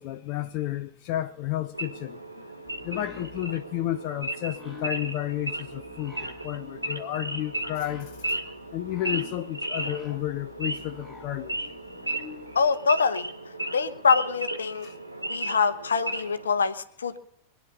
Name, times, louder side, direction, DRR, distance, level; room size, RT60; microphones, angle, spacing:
voice 1, 0.0-2.2 2.8-6.2 6.4-8.1 8.7-11.7 14.8-14.9, left 14 dB, 45° left, 0.6 m, -31 dB
Wild animals / Idling, 1.7-16.5, right 1 dB, 85° right, 1.5 m, -35 dB
sound 1, 2.6-12.6, left 5 dB, ahead, 6.5 m, -48 dB
voice 2, 12.5-13.3 13.7-14.9 15.3-17.2, left 5 dB, 70° left, 1.0 m, -24 dB
23.5 x 10.0 x 5.4 m
figure-of-eight pair, 90°, 0 cm